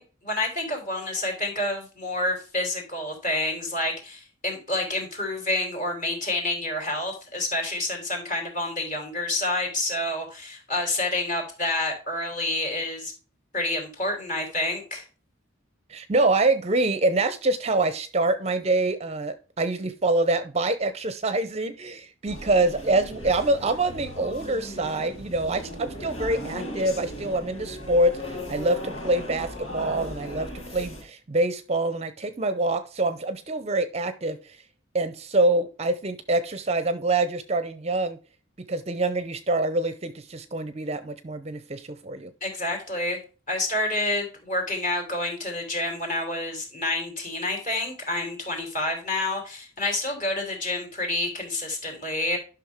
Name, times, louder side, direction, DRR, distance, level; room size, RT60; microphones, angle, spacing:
voice 1, 0.0-13.1 13.5-15.0 42.4-43.2 43.5-52.4, left 2 dB, 40° left, 2 dB, 3.4 m, -28 dB
voice 2, 15.9-34.6 34.9-38.2 38.7-42.3, right 2 dB, 30° right, 12 dB, 0.6 m, -25 dB
sound 1, 22.3-31.0, equal, 80° left, 5.2 m, -37 dB
11.5 x 5.9 x 3.6 m, 0.35 s
head